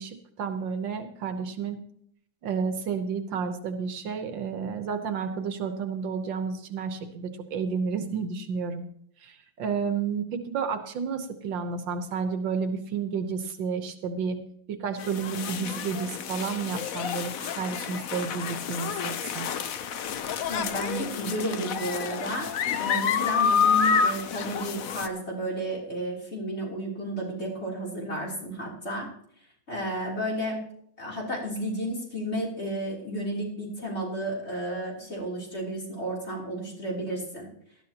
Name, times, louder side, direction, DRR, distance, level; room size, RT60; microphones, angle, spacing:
voice 1, 0.0-1.8 2.4-8.8 9.2-14.4 14.7-19.5, right 6 dB, 75° right, 7 dB, 1.6 m, -31 dB
sound 1, 15.0-25.1, left 6 dB, 60° left, 1.0 m, -28 dB
voice 2, 20.5-22.5 22.8-29.1 29.7-30.6 31.0-37.5, right 1 dB, 35° left, -3 dB, 3.5 m, -32 dB
18.5 x 12.0 x 2.9 m, 0.68 s
omnidirectional pair, 2.1 m